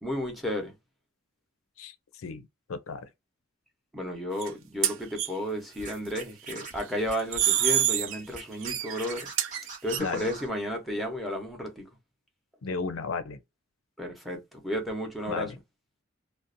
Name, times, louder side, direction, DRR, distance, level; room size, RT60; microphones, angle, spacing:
voice 1, 0.0-0.7 3.9-9.2 9.8-11.8 14.0-15.5, left 1 dB, ahead, 0.7 m, -33 dB
voice 2, 2.2-3.0 10.0-10.3 12.6-13.4 15.3-15.5, left 4 dB, 85° left, 0.5 m, -34 dB
sound 1, 4.4-4.5 4.8-5.3 7.2-8.2 8.6-10.0, right 11 dB, 65° right, 0.4 m, -26 dB
Scratching (performance technique), 5.8-7.8 8.3-10.5, right 4 dB, 40° right, 0.8 m, -41 dB
2.5 x 2.0 x 2.5 m
head